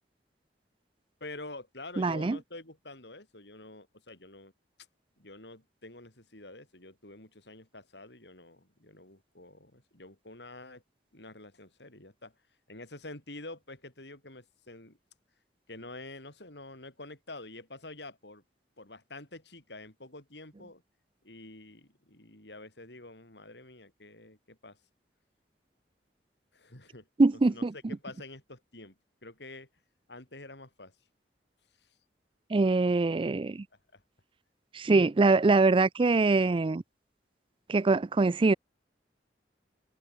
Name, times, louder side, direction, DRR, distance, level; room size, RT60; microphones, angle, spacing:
voice 1, 1.2-4.5 5.2-10.8 11.1-12.3 12.7-15.0 15.7-18.4 18.8-20.8 21.2-24.8 26.5-27.1 27.5-27.6 27.9-29.0 29.2-29.7 30.1-30.9 31.8-31.9 33.9-34.0, left 2 dB, 70° left, 6.4 m, -47 dB
voice 2, 2.0-2.4 27.2-27.7 32.5-33.6 34.7-36.8 37.7-38.5, right 3 dB, 30° right, 0.4 m, -23 dB
head